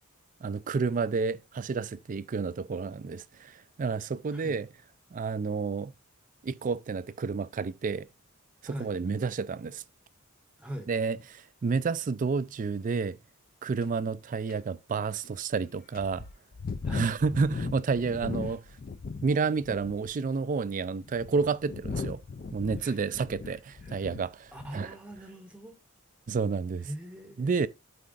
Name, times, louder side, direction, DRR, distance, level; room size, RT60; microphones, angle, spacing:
voice 1, 0.4-4.7 5.1-5.9 6.4-8.1 8.6-9.8 10.9-13.2 13.6-16.3 16.9-18.6 19.2-22.2 22.5-23.6 23.9-24.9 26.3-26.9 27.4-27.7, right 4 dB, 40° right, 0.4 m, -30 dB
voice 2, 8.6-9.0 10.6-10.9 16.8-17.1 18.2-18.6 22.7-23.1 23.4-24.1 24.5-25.8 26.8-27.7, equal, 5° right, 0.8 m, -43 dB
sound 1, 13.8-13.9 14.5-14.6 15.2-15.3 15.9-19.3 19.6-20.1 20.8-24.3 24.6-24.9, left 4 dB, 40° left, 0.4 m, -38 dB
12.5 x 4.3 x 2.5 m
head